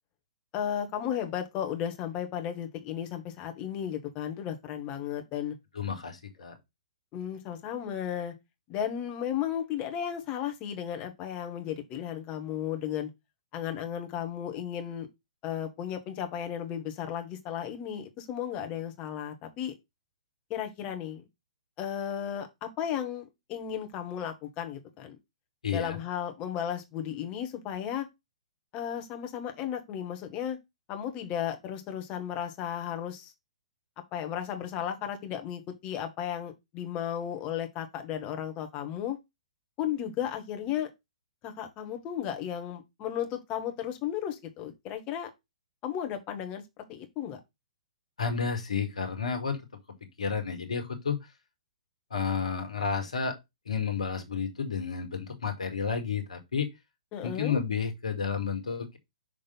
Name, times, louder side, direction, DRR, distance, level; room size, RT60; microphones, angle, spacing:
voice 1, 0.5-5.5 7.1-8.3 8.7-13.1 13.5-15.1 15.4-19.7 20.5-21.2 21.8-25.1 25.7-28.1 28.7-30.6 30.9-33.3 34.1-39.2 39.8-40.9 41.4-45.3 45.8-46.6 46.9-47.4 57.1-57.6, left 9 dB, 30° left, 1.5 m, -34 dB
voice 2, 5.7-6.5 25.6-26.0 48.2-49.6 50.2-51.2 52.1-53.4 53.7-56.7 57.2-59.0, left 6 dB, 65° left, 1.9 m, -31 dB
6.2 x 3.6 x 5.6 m
figure-of-eight pair, 120°, 4 cm